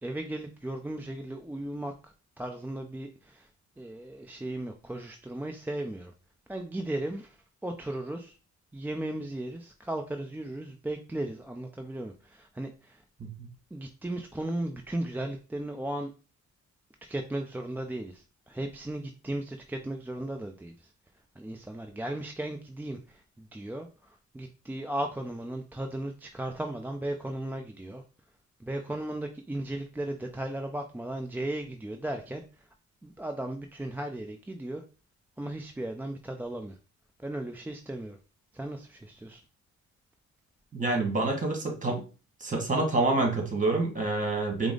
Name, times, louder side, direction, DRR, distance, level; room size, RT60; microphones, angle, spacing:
voice 1, 0.0-3.5 3.8-6.1 6.5-7.4 7.6-8.4 8.7-13.0 13.7-16.1 17.0-20.9 21.4-28.0 28.6-32.7 33.0-34.8 35.4-36.8 37.2-38.2 38.5-39.4, right 1 dB, 5° right, 3 dB, 0.4 m, -36 dB
voice 2, 40.7-42.0 42.4-44.7, right 2 dB, 25° right, 2 dB, 1.6 m, -27 dB
4.8 x 2.0 x 3.7 m, 0.34 s
cardioid pair, 90°, 30 cm